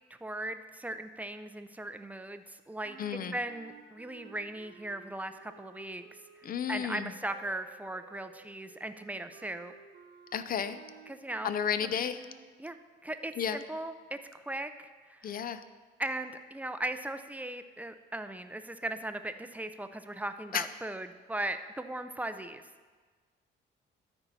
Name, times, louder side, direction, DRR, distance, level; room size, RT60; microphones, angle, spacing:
voice 1, 0.2-3.0 3.3-6.0 6.7-9.7 11.1-11.5 11.8-11.9 12.6-12.8 13.0-15.4 16.0-22.6, right 1 dB, 5° right, 9 dB, 0.4 m, -38 dB
sound 1, 2.8-12.5, right 7 dB, 55° right, 0.8 m, -55 dB
voice 2, 3.0-3.3 6.4-7.1 10.3-10.8 11.4-12.3 13.4-13.6 15.2-15.6 20.5-20.7, left 8 dB, 45° left, 13 dB, 0.5 m, -32 dB
13.0 x 4.5 x 4.1 m, 1.4 s
cardioid pair, 90°, 20 cm